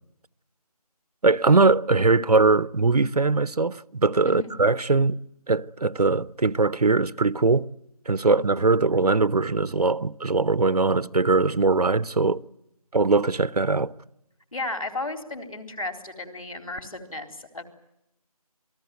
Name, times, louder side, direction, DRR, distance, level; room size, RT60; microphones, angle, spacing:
voice 1, 1.2-5.2 5.5-7.7 8.1-12.4 12.9-13.9, right 3 dB, 90° right, 0.9 m, -21 dB
voice 2, 14.5-17.6, left 2 dB, 60° left, 3.9 m, -34 dB
28.0 x 20.5 x 9.3 m
figure-of-eight pair, 175°, 19 cm